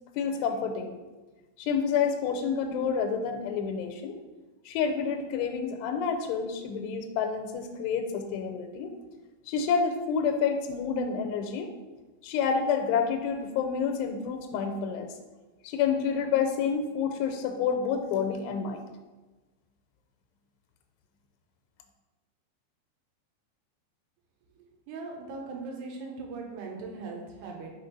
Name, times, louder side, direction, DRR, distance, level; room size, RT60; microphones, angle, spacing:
voice 1, 0.2-1.0 1.6-4.2 4.7-8.9 9.5-11.7 12.2-15.1 15.6-18.9, left 6 dB, 90° left, 4 dB, 2.8 m, -29 dB
voice 2, 24.6-27.7, right 3 dB, 85° right, 1 dB, 3.0 m, -39 dB
6.1 x 4.5 x 5.3 m, 1.2 s
omnidirectional pair, 4.7 m